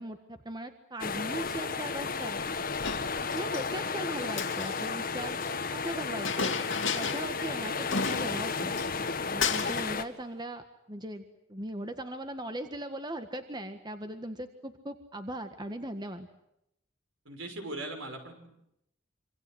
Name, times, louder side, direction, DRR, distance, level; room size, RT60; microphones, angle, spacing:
voice 1, 0.0-2.4 3.0-5.4 5.7-6.5 6.9-8.7 9.3-11.2 11.5-16.3, right 1 dB, 20° right, 7 dB, 1.7 m, -39 dB
sound 1, 1.0-10.0, left 4 dB, 45° left, 1.8 m, -33 dB
Chink clink, 2.8-3.7 4.3-5.5 6.3-7.4 7.6-7.7 7.9-9.1 9.4-9.9, left 5 dB, 75° left, 2.5 m, -33 dB
voice 2, 17.2-18.6, right 2 dB, 75° right, 6 dB, 6.4 m, -39 dB
26.5 x 26.5 x 8.0 m, 0.81 s
head